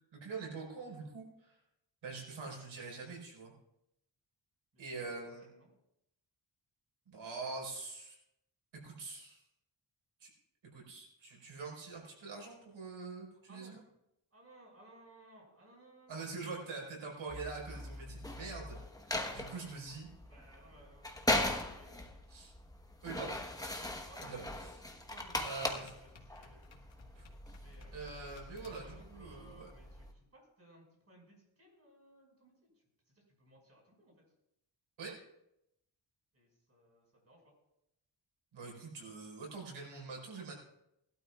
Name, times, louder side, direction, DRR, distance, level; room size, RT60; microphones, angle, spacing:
voice 1, 0.1-1.6 2.0-3.5 4.8-5.5 7.1-8.2 8.7-9.4 10.2-10.3 10.7-13.8 16.1-18.8 19.3-20.1 22.3-22.5 23.0-23.4 24.2-24.4 25.4-25.9 27.1-27.2 27.9-29.7 35.0-35.2 38.5-40.5, right 4 dB, 85° right, -1 dB, 4.9 m, -44 dB
voice 2, 4.7-5.7 13.5-13.8 14.3-16.2 19.9-20.0 20.2-22.0 24.1-24.7 25.1-26.6 27.6-28.2 28.6-34.2 36.3-37.5, right 1 dB, 35° right, -1 dB, 5.6 m, -61 dB
sound 1, 17.3-30.1, left 1 dB, 10° left, 1.1 m, -40 dB
sound 2, 21.6-21.7 24.2-24.3 25.3-28.9, left 4 dB, 80° left, 1.7 m, -60 dB
20.0 x 12.5 x 2.4 m, 0.83 s
wide cardioid pair, 105°, 45 cm